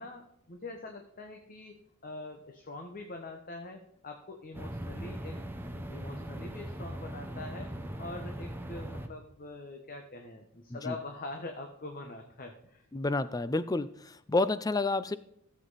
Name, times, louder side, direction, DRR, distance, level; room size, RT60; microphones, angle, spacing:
voice 1, 0.0-5.4 5.7-7.7 8.0-12.8, left 2 dB, 40° left, 4 dB, 1.0 m, -44 dB
sound 1, 4.5-9.1, right 1 dB, 10° right, 0.8 m, -40 dB
voice 2, 12.9-15.2, left 2 dB, 15° left, 15 dB, 0.4 m, -29 dB
14.5 x 7.7 x 4.0 m, 0.72 s
head